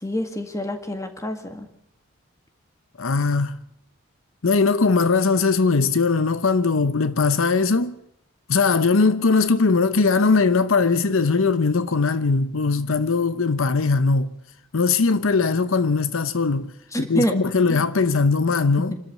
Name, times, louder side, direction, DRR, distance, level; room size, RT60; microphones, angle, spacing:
voice 1, 0.0-1.7 16.9-17.4 17.7-17.9 18.9-19.0, equal, 15° left, 1.9 m, -27 dB
voice 2, 3.0-3.6 4.4-8.0 8.5-14.3 14.7-16.7 17.0-18.9, left 4 dB, 75° left, 0.8 m, -20 dB
28.0 x 13.0 x 7.2 m
head